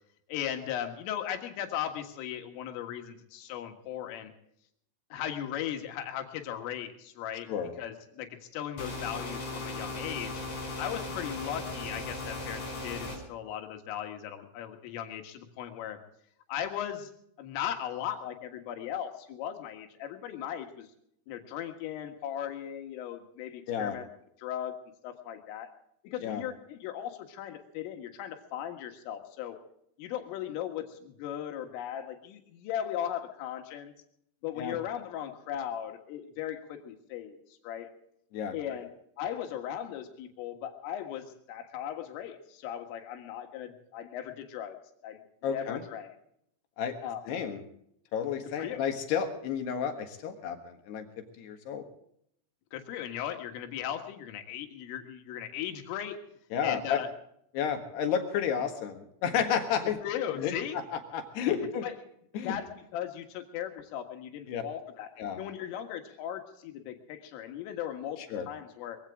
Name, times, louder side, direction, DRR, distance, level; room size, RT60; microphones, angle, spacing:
voice 1, 0.3-4.3 5.1-7.5 7.8-10.3 10.8-16.0 16.5-17.1 17.4-20.9 21.3-24.1 24.4-24.8 25.0-25.7 26.0-29.6 30.0-33.9 34.4-37.4 37.6-37.9 38.5-38.9 39.2-44.8 45.0-45.2 45.5-46.1 47.0-47.2 48.4-48.8 52.7-56.2 56.6-57.1 60.0-60.8 61.8-61.9 62.4-62.7 62.9-65.1 65.4-68.2 68.5-69.0, left 10 dB, 90° left, 5 dB, 4.3 m, -37 dB
sound 1, 8.8-13.2, left 2 dB, 35° left, 5.9 m, -37 dB
voice 2, 45.4-45.8 46.8-47.0 47.3-47.6 48.1-51.1 51.4-51.8 56.5-57.0 57.5-60.0 60.4-61.8 62.3-62.6 64.5-64.6 65.2-65.4 68.3-68.5, left 8 dB, 65° left, 6 dB, 3.2 m, -31 dB
22.5 x 16.0 x 3.7 m, 0.72 s
omnidirectional pair, 5.7 m